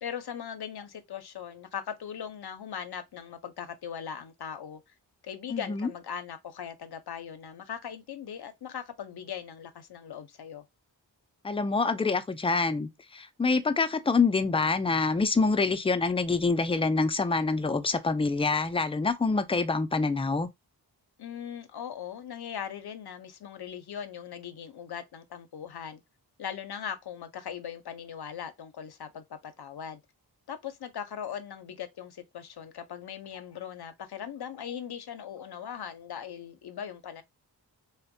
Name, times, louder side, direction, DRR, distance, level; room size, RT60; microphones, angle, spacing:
voice 1, 0.0-4.8 5.2-10.6 21.2-26.0 26.4-30.0 30.5-37.2, left 8 dB, 60° left, 0.6 m, -39 dB
voice 2, 5.5-5.9 11.4-20.5, left 4 dB, 15° left, 0.3 m, -26 dB
2.6 x 2.1 x 2.5 m
cardioid pair, 40°, 43 cm